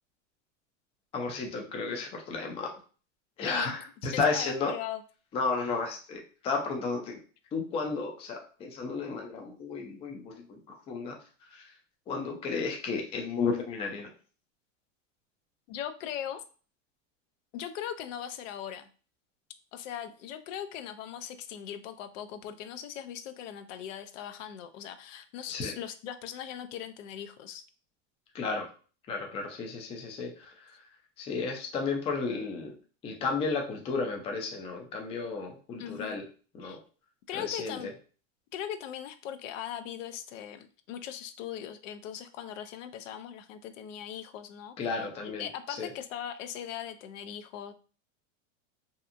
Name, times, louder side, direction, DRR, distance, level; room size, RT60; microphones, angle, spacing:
voice 1, 1.1-2.7 3.4-4.7 5.3-7.2 7.5-11.2 11.5-11.7 12.1-14.1 25.5-25.7 28.3-28.7 29.1-30.5 31.2-32.7 33.0-36.2 36.5-36.8 37.3-37.9 44.8-45.9, left 4 dB, 15° left, 1 dB, 0.3 m, -33 dB
voice 2, 3.5-3.8 4.1-5.0 15.7-16.4 17.5-18.9 19.7-27.6 35.8-36.2 36.6-36.8 37.3-37.9 38.5-47.7, left 10 dB, 75° left, 10 dB, 0.5 m, -39 dB
2.7 x 2.4 x 2.4 m, 0.39 s
supercardioid pair, 130°, 38 cm